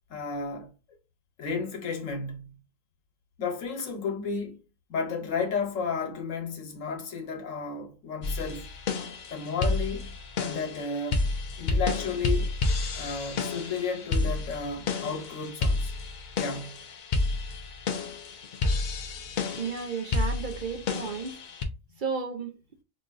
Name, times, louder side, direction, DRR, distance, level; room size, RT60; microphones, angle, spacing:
voice 1, 0.1-0.7 1.4-2.5 3.4-4.6 4.9-8.7 9.3-11.3 11.6-12.5 12.9-15.9 16.4-16.8, left 5 dB, 90° left, 1.3 m, -33 dB
sound 1, 8.2-21.6, left 3 dB, 60° left, 0.5 m, -30 dB
voice 2, 19.6-21.4 22.0-22.5, right 5 dB, 55° right, 0.6 m, -33 dB
4.8 x 2.5 x 2.4 m
omnidirectional pair, 1.3 m